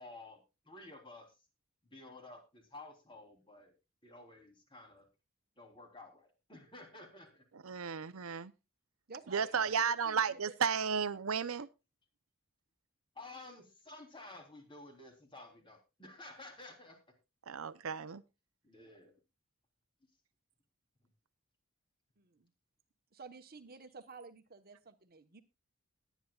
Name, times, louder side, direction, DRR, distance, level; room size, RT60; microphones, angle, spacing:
voice 1, 0.0-1.4 1.8-3.7 4.0-5.1 5.6-7.5 9.1-9.7 13.2-17.0 18.6-19.1, left 2 dB, 25° left, 3 dB, 3.4 m, -53 dB
voice 2, 7.6-8.5 9.3-11.7 17.5-18.2, right 6 dB, 85° right, 14 dB, 0.7 m, -33 dB
voice 3, 9.1-10.4 22.2-22.5 23.1-25.4, right 4 dB, 50° right, 9 dB, 1.1 m, -52 dB
20.5 x 9.3 x 2.4 m, 0.27 s
head